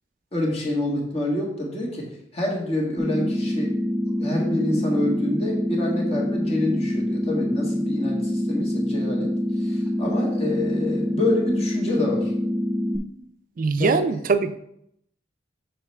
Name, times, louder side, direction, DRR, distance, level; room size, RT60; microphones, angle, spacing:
voice 1, 0.3-2.1 2.3-3.7 4.2-9.3 9.6-12.3 13.8-14.0, left 1 dB, 35° left, -1 dB, 1.7 m, -27 dB
sound 1, 3.0-13.0, left 1 dB, 5° right, 0.6 m, -25 dB
voice 2, 13.6-14.5, right 4 dB, 50° right, 11 dB, 0.4 m, -22 dB
7.0 x 5.8 x 3.3 m, 0.74 s
head